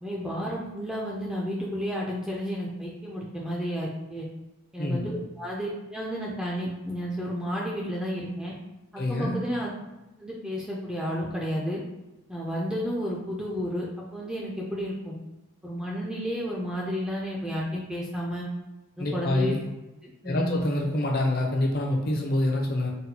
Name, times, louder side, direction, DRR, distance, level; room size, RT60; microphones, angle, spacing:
voice 1, 0.0-4.3 4.7-8.5 8.9-9.7 10.2-11.8 12.3-13.9 14.1-15.2 15.6-18.4 19.0-19.5 20.0-20.6, equal, 5° right, -4 dB, 0.3 m, -32 dB
voice 2, 9.0-9.4 19.0-19.7 20.2-22.9, left 1 dB, 45° left, 0 dB, 0.5 m, -26 dB
4.0 x 2.1 x 2.8 m, 1.0 s
head